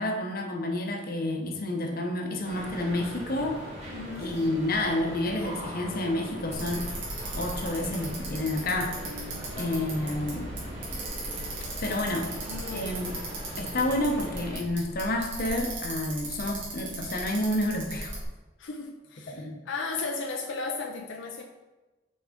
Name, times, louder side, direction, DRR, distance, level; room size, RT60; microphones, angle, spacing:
voice 1, 0.0-3.6 4.2-6.9 7.4-8.9 9.6-10.5 11.8-12.3 12.7-13.1 13.6-18.2 19.3-19.6, left 1 dB, 55° left, 3 dB, 0.9 m, -29 dB
sound 1, 2.4-14.6, equal, 35° right, 1.9 m, -40 dB
voice 2, 3.9-4.3 12.5-13.0 18.6-21.4, left 3 dB, 85° left, 2 dB, 0.6 m, -35 dB
Bicycle, 6.5-18.2, right 2 dB, 75° right, 2.2 m, -37 dB
6.2 x 4.6 x 3.7 m, 1.1 s
head